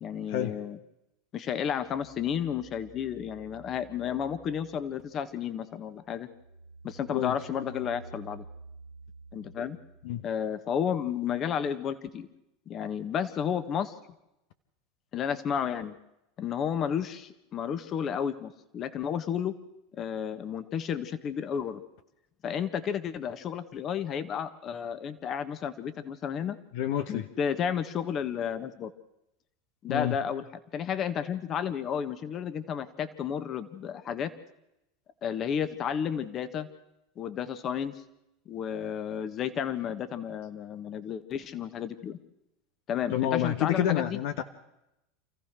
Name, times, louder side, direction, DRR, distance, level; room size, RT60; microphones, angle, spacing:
voice 1, 0.0-0.8 1.3-6.3 6.8-8.4 9.3-9.8 10.2-12.3 12.7-13.9 15.1-15.9 16.4-19.5 19.9-21.8 22.4-26.6 27.1-28.9 29.8-30.4 30.7-34.3 35.2-36.7 37.2-37.9 38.4-42.2 42.9-44.2, left 8 dB, 40° left, 11 dB, 1.6 m, -32 dB
sound 1, 1.6-5.4 5.8-10.4, right 4 dB, 85° left, 4.2 m, -51 dB
voice 2, 26.7-27.3 29.9-30.2 43.1-44.4, left 11 dB, 65° left, 8 dB, 1.3 m, -28 dB
28.0 x 15.0 x 6.2 m, 0.88 s
hypercardioid pair, 100°, 0 cm